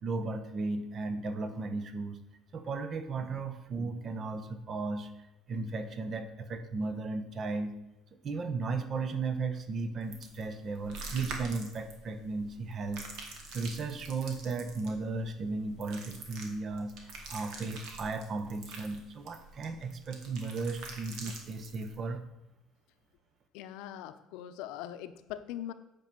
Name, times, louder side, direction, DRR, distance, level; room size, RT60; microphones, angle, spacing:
voice 1, 0.0-2.2 2.5-5.1 5.5-7.7 8.2-13.1 13.5-22.2, right 3 dB, 40° right, 9 dB, 1.0 m, -35 dB
sound 1, 10.0-22.0, right 3 dB, 75° right, 2.1 m, -46 dB
voice 2, 23.5-25.7, left 11 dB, 85° left, 10 dB, 0.8 m, -41 dB
9.1 x 5.4 x 6.9 m, 0.94 s
cardioid pair, 125°, 0 cm